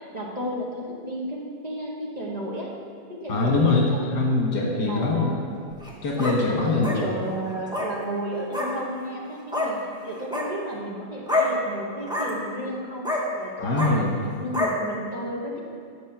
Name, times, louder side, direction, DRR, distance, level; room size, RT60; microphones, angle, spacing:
voice 1, 0.0-2.7 3.1-4.3 4.8-5.5 6.5-9.8 10.0-14.1 14.4-15.6, right 1 dB, 25° right, -4 dB, 1.4 m, -33 dB
voice 2, 3.3-5.4 6.0-7.0 13.6-14.2, left 2 dB, 80° left, -2 dB, 1.9 m, -23 dB
sound 1, 5.7-6.4 6.8-7.0 7.7-7.9 8.5-8.7 9.5-9.7 10.2-10.5 11.3-11.5 12.0-12.3 13.0-13.2 13.7-13.9 14.5-14.7, left 2 dB, 5° right, 1.0 m, -26 dB
9.3 x 4.8 x 7.1 m, 2.2 s
omnidirectional pair, 1.7 m